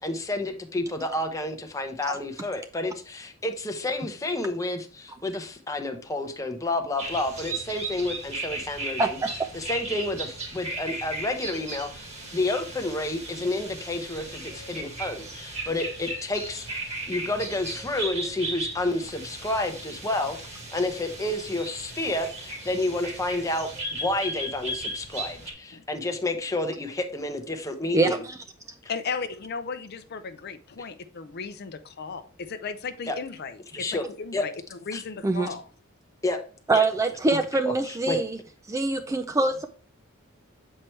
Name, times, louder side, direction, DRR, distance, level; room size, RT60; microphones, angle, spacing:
voice 1, 0.0-9.2 9.5-28.2 33.1-33.2 33.7-34.0 34.3-34.4 34.9-35.0 36.2-36.4 36.7-36.8 37.7-38.2, left 2 dB, 15° left, 5 dB, 0.8 m, -30 dB
sound 1, 7.0-25.5, right 2 dB, 30° right, 1.9 m, -36 dB
voice 2, 9.0-9.4 27.9-28.4 35.2-35.5 36.7-38.4 38.7-39.7, right 3 dB, 15° right, 7 dB, 0.3 m, -24 dB
voice 3, 28.9-34.5 34.9-35.7, left 5 dB, 50° left, 10 dB, 0.5 m, -35 dB
7.5 x 4.5 x 3.2 m, 0.41 s
head